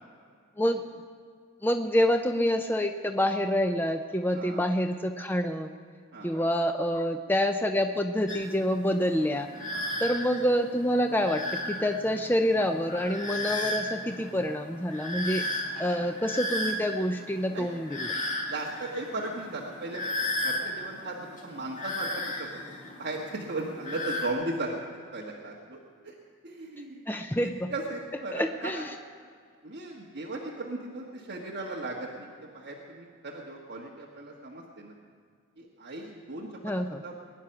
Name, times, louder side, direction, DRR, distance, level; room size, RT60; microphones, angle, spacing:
voice 1, 1.6-5.7 6.2-9.5 10.0-15.4 15.8-18.1 27.1-27.7 28.3-28.8 36.6-37.0, equal, 10° left, 6 dB, 0.5 m, -27 dB
voice 2, 6.1-6.4 9.7-9.9 17.5-17.7 18.5-20.1 20.4-22.6 23.0-26.1 26.4-27.1 27.4-28.8 29.6-34.9 35.6-36.7 37.0-37.2, right 2 dB, 50° right, -3 dB, 1.4 m, -37 dB
sound 1, 8.3-24.3, left 1 dB, 35° left, 1.9 m, -35 dB
21.0 x 9.9 x 5.8 m, 2.1 s
head